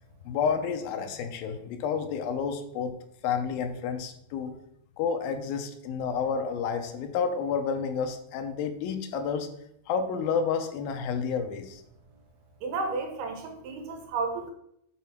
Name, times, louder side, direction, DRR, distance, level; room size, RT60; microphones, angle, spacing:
voice 1, 0.2-3.0 3.2-4.5 5.0-9.5 9.9-11.8, left 6 dB, 80° left, 6 dB, 2.5 m, -30 dB
voice 2, 12.6-14.5, right 3 dB, 90° right, 4 dB, 3.2 m, -32 dB
7.1 x 4.2 x 5.9 m, 0.73 s
omnidirectional pair, 4.3 m